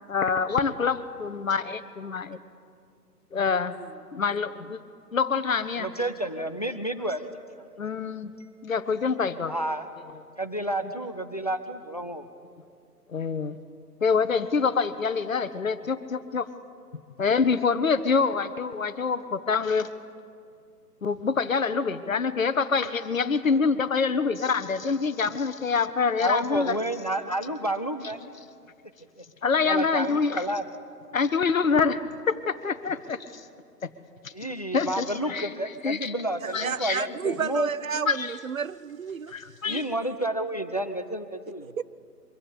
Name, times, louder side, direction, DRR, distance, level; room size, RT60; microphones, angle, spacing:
voice 1, 0.1-2.4 3.3-3.8 4.1-4.8 5.1-6.1 6.4-6.5 7.8-8.3 8.6-9.6 10.1-10.2 10.8-11.1 13.1-13.6 14.0-16.5 17.2-19.9 21.0-26.8 27.4-27.5 28.0-28.3 29.4-30.6 31.1-33.5 33.8-33.9 34.2-36.3 36.5-37.1 37.9-38.4 39.3-39.8, left 5 dB, 55° left, 1.0 m, -26 dB
voice 2, 5.8-7.2 9.5-9.9 10.4-12.3 26.2-28.2 29.6-30.6 34.3-37.7 39.6-41.7, right 1 dB, 25° left, 0.5 m, -30 dB
voice 3, 36.4-39.3 39.7-39.8 41.8-41.9, right 6 dB, 60° right, 0.5 m, -31 dB
23.5 x 15.5 x 8.3 m
figure-of-eight pair, 145°, 48 cm